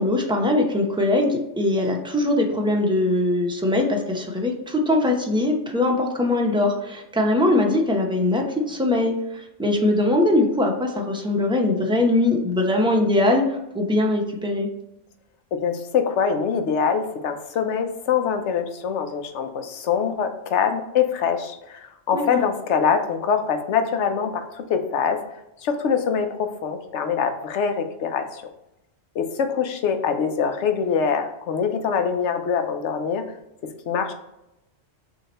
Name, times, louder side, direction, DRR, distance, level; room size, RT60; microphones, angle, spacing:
voice 1, 0.0-9.1 9.6-13.4 13.7-14.7 22.1-22.4, left 2 dB, 5° right, 1 dB, 0.5 m, -21 dB
voice 2, 15.6-25.2 25.6-28.4 29.2-33.2 33.9-34.1, left 6 dB, 90° left, 7 dB, 1.0 m, -24 dB
6.3 x 2.8 x 2.9 m, 0.89 s
omnidirectional pair, 1.2 m